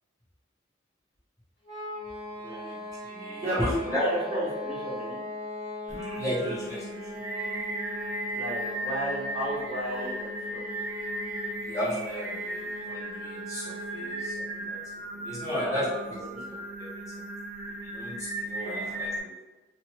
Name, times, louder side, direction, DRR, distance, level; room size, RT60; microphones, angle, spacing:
sound 1, 1.6-14.4, left 2 dB, 70° left, 1.0 m, -40 dB
voice 1, 2.4-2.8 3.0-4.0 6.2-7.1 11.6-14.8 15.1-16.2 16.5-17.2 17.8-19.4, equal, 15° left, -9 dB, 0.6 m, -34 dB
voice 2, 3.4-5.2 8.3-10.6 15.4-15.9 16.2-16.4 18.4-19.1, right 1 dB, 30° right, -9 dB, 1.0 m, -33 dB
Singing, 5.9-19.2, right 2 dB, 75° right, 0.7 m, -36 dB
2.7 x 2.2 x 2.9 m, 1.1 s
head